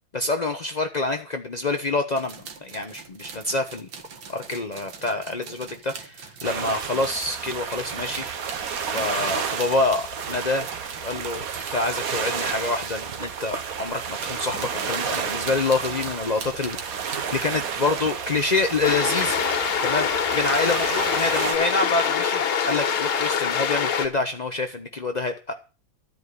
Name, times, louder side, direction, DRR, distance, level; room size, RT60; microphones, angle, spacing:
voice 1, 0.1-3.9 4.3-8.2 8.9-10.7 11.0-11.5 11.7-19.4 19.8-25.5, left 3 dB, 45° left, 5 dB, 0.5 m, -27 dB
sound 1, 2.1-13.4 14.0-18.4 18.8-19.5 19.8-20.7 21.1-21.8, right 5 dB, 70° right, 2.3 m, -42 dB
sound 2, 6.4-21.6, right 7 dB, 50° right, 1.4 m, -31 dB
sound 3, 18.8-24.1, left 7 dB, 80° left, 2.2 m, -24 dB
13.5 x 5.5 x 9.5 m, 0.33 s
omnidirectional pair, 2.3 m